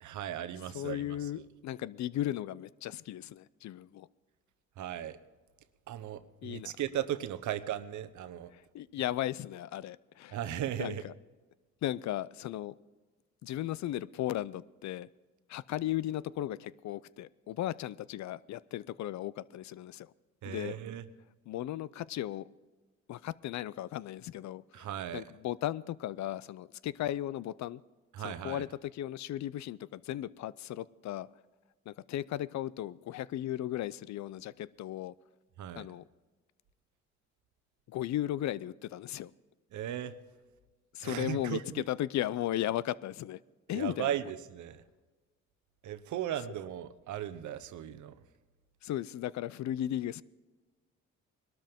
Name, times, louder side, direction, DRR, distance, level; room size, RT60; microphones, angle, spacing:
voice 1, 0.0-1.3 4.8-5.2 5.9-8.5 10.3-11.1 20.4-21.0 24.7-25.2 28.1-28.6 35.6-35.9 39.7-40.2 41.0-41.8 43.7-44.8 45.8-48.1, right 11 dB, 75° right, 1.0 m, -37 dB
voice 2, 0.7-4.1 6.4-6.7 8.5-10.4 10.8-11.1 11.8-12.8 13.4-15.1 15.5-20.1 20.4-20.7 21.5-22.5 23.1-24.9 25.1-27.8 28.2-31.3 31.9-35.1 35.8-36.1 37.9-39.3 40.9-43.4 43.7-44.1 48.8-50.2, left 13 dB, 65° left, 0.6 m, -36 dB
21.0 x 13.0 x 3.6 m
cardioid pair, 90°, 30 cm